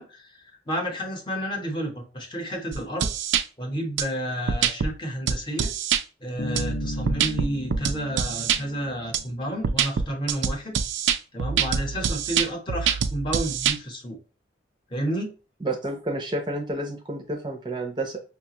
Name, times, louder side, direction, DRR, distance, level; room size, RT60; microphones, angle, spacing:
voice 1, 0.0-3.1 3.6-5.7 6.2-10.8 11.3-14.2 14.9-15.3, right 1 dB, 25° left, 3 dB, 0.8 m, -31 dB
sound 1, 2.7-3.4 4.0-4.1 4.5-4.9 5.3-6.0 6.6-8.6 9.1-9.2 9.6-13.8, right 7 dB, 85° right, 0.4 m, -25 dB
Bass guitar, 6.4-10.1, left 2 dB, 60° left, 0.5 m, -36 dB
voice 2, 15.6-18.2, right 1 dB, 25° right, 2 dB, 0.6 m, -30 dB
5.7 x 2.3 x 2.9 m, 0.34 s
head